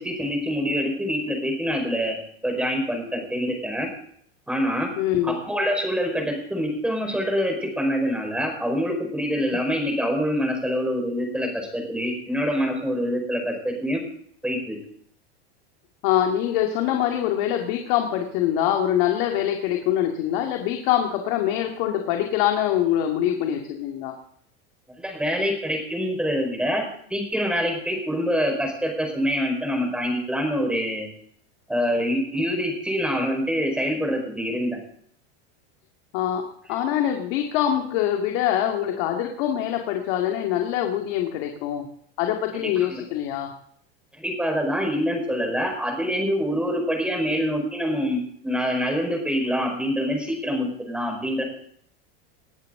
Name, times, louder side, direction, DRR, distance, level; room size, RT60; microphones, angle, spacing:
voice 1, 0.0-3.9 4.5-4.9 5.2-14.0 14.4-14.8 25.0-31.1 31.7-34.8 42.6-43.0 44.1-51.4, equal, 5° right, 3 dB, 4.8 m, -25 dB
voice 2, 5.0-5.4 9.5-9.6 16.0-24.1 36.1-36.4 36.7-41.8 42.2-43.5, left 11 dB, 60° left, 3 dB, 2.3 m, -24 dB
20.0 x 13.5 x 3.8 m, 0.64 s
supercardioid pair, 135°, 31 cm